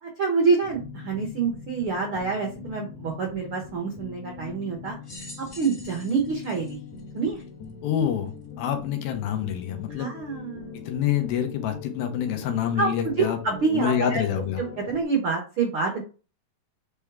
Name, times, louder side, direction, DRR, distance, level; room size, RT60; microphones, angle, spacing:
voice 1, 0.0-4.9 5.4-6.8 7.1-7.4 10.0-10.8 12.8-14.2 14.6-16.0, right 4 dB, 80° right, 1 dB, 1.2 m, -27 dB
sound 1, 0.6-15.0, left 6 dB, 60° left, 1.6 m, -41 dB
sound 2, 5.0-7.7 8.4-8.5 9.6-9.7, left 1 dB, 35° left, 2.1 m, -46 dB
voice 2, 7.8-10.1 10.9-13.4 13.7-14.6, left 9 dB, 80° left, 5 dB, 2.7 m, -27 dB
8.3 x 3.5 x 3.5 m, 0.33 s
omnidirectional pair, 4.4 m